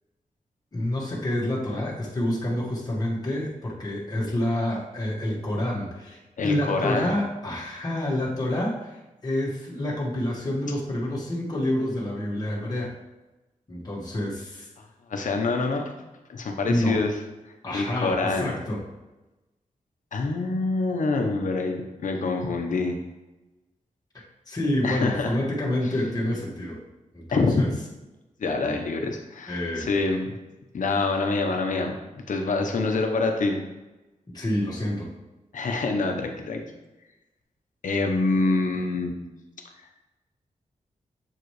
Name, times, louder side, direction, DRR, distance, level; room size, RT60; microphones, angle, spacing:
voice 1, 0.7-12.9 13.7-14.7 16.6-17.0 17.6-18.8 24.1-26.8 27.1-27.7 28.7-28.8 29.5-29.9 34.3-35.1, left 1 dB, 30° left, -5 dB, 1.6 m, -28 dB
voice 2, 6.4-7.1 15.1-15.9 16.3-17.1 17.7-18.6 20.1-23.0 24.8-25.4 27.3-27.7 28.4-30.3 30.7-32.0 32.3-33.6 35.5-36.6 37.8-39.1, left 3 dB, 70° left, 3 dB, 1.0 m, -26 dB
7.7 x 5.0 x 3.2 m, 1.1 s
wide cardioid pair, 120°, 14 cm